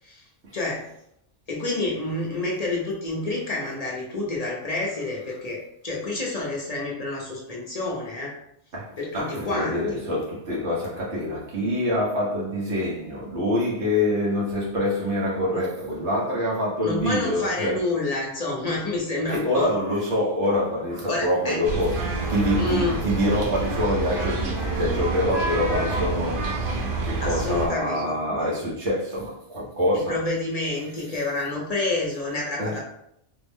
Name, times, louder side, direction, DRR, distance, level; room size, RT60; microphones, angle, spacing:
voice 1, 0.5-0.9 1.5-8.4 9.0-9.8 15.5-15.6 16.8-19.7 21.1-21.6 22.6-23.0 27.2-28.1 29.9-32.8, left 2 dB, 40° left, 0.7 m, -28 dB
voice 2, 8.7-17.9 19.3-26.7 27.0-30.2 32.6-32.8, left 1 dB, 80° right, 1.4 m, -26 dB
sound 1, 21.6-27.7, right 2 dB, 55° right, 0.8 m, -27 dB
3.7 x 2.0 x 3.5 m
omnidirectional pair, 1.2 m